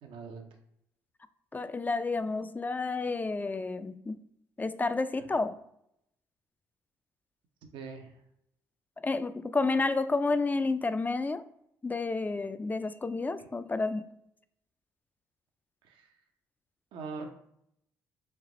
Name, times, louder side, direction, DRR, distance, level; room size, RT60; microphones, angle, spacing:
voice 1, 0.0-0.5 5.2-5.3 7.7-8.2 13.4-13.5 15.8-16.1 16.9-17.3, right 4 dB, 70° right, 0.6 m, -42 dB
voice 2, 1.5-4.2 4.6-5.6 9.0-11.4 11.8-14.1, left 3 dB, 20° left, 0.3 m, -30 dB
3.3 x 2.9 x 3.7 m
hypercardioid pair, 55°, 9 cm